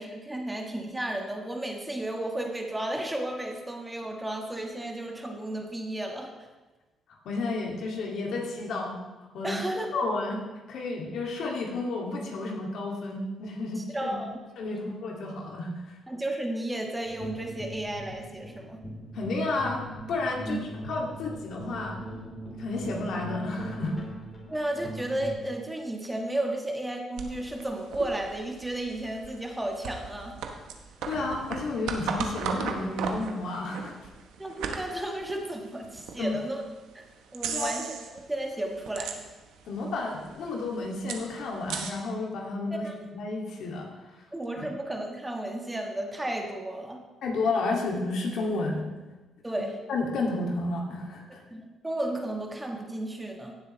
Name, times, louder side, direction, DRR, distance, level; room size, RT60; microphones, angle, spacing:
voice 1, 0.0-6.5 9.4-9.9 13.8-14.3 14.7-14.8 16.1-18.8 20.4-20.6 24.5-30.4 34.4-36.6 36.9-37.0 37.3-37.9 38.3-39.2 42.7-43.0 44.3-47.0 49.4-49.8 51.5-53.5, right 1 dB, 10° right, 2 dB, 1.5 m, -33 dB
voice 2, 7.3-9.0 9.3-9.6 9.9-10.4 10.7-14.2 14.6-16.0 19.1-20.6 20.9-22.0 22.6-24.0 31.0-34.0 36.2-36.3 37.5-37.7 39.7-43.9 44.6-44.7 47.2-48.9 49.9-51.4, left 3 dB, 75° left, -1 dB, 2.1 m, -31 dB
sound 1, 17.1-25.4, right 1 dB, 35° left, 3.6 m, -40 dB
sound 2, 27.2-36.2 36.7-36.8 37.3-38.2 38.5-39.6 39.9-40.0 40.2-41.9, right 6 dB, 90° right, 1.0 m, -36 dB
16.0 x 7.5 x 3.1 m, 1.2 s
cardioid pair, 90°, 0 cm